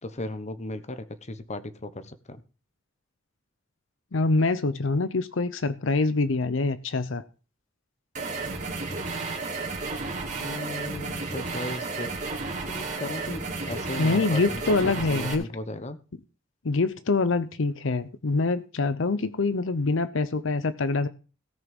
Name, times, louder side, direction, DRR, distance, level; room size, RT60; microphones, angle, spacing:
voice 1, 0.0-2.4 10.4-12.1 12.7-16.0, left 2 dB, 35° left, 1.0 m, -36 dB
voice 2, 4.1-7.2 14.0-15.4 16.6-21.1, left 3 dB, 70° left, 0.7 m, -25 dB
sound 1, 8.1-15.3, right 3 dB, 40° right, 2.9 m, -32 dB
17.0 x 6.1 x 5.3 m
head